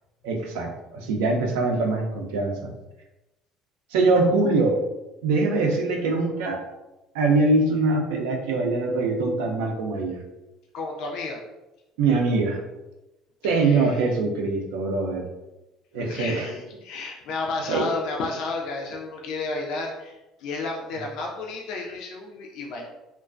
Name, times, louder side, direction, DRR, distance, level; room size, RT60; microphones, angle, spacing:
voice 1, 0.2-2.7 3.9-4.8 5.2-6.6 7.1-10.2 12.0-12.6 13.4-15.3 15.9-16.5 17.7-17.9, right 3 dB, 85° right, 2 dB, 0.4 m, -23 dB
voice 2, 10.7-11.4 13.4-14.0 15.9-22.8, left 3 dB, 70° left, 0 dB, 0.4 m, -32 dB
2.3 x 2.2 x 2.4 m, 1.0 s
supercardioid pair, 85°, 0 cm